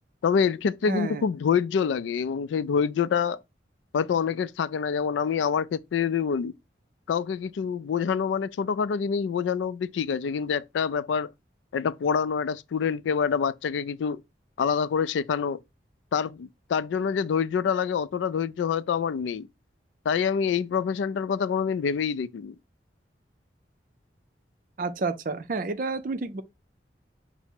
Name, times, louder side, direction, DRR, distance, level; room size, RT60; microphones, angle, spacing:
voice 1, 0.2-3.4 3.9-6.5 7.1-11.3 11.7-14.2 14.6-15.6 16.1-19.5 20.1-22.6, left 6 dB, 85° left, 0.3 m, -26 dB
voice 2, 0.9-1.3 24.8-26.4, right 3 dB, 50° right, 0.4 m, -30 dB
5.7 x 2.0 x 4.3 m
head